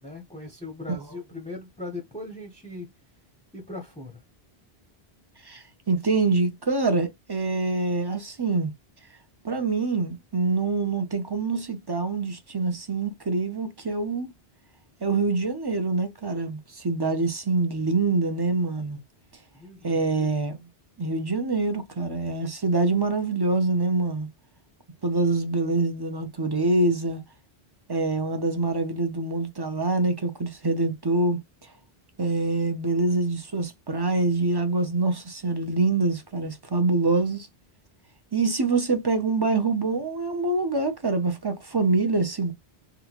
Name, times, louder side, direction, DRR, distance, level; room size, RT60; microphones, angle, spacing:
voice 1, 0.0-2.9 3.5-4.2 19.5-20.4, left 2 dB, 10° left, 0.7 m, -39 dB
voice 2, 5.4-8.7 9.4-14.3 15.0-19.0 19.8-20.6 21.0-24.3 25.0-27.2 27.9-31.4 32.2-37.5 38.3-42.5, right 3 dB, 30° right, 0.6 m, -25 dB
3.8 x 2.2 x 2.9 m
omnidirectional pair, 1.1 m